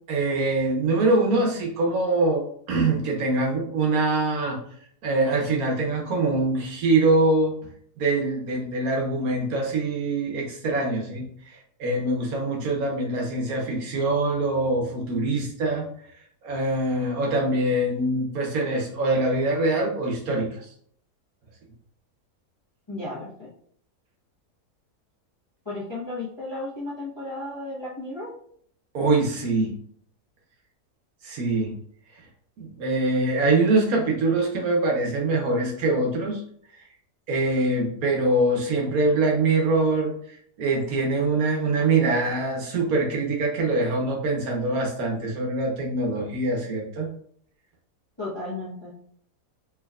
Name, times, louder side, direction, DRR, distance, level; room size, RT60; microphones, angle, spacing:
voice 1, 0.1-4.6 5.0-7.5 8.0-15.9 16.4-20.7 28.9-29.8 31.2-31.7 32.6-36.4 37.3-40.1 40.6-47.1, right 2 dB, 65° right, 0 dB, 1.2 m, -24 dB
voice 2, 22.9-23.5 25.6-28.3 48.2-48.9, left 2 dB, 20° left, -7 dB, 0.8 m, -34 dB
4.5 x 3.0 x 2.3 m, 0.62 s
omnidirectional pair, 1.7 m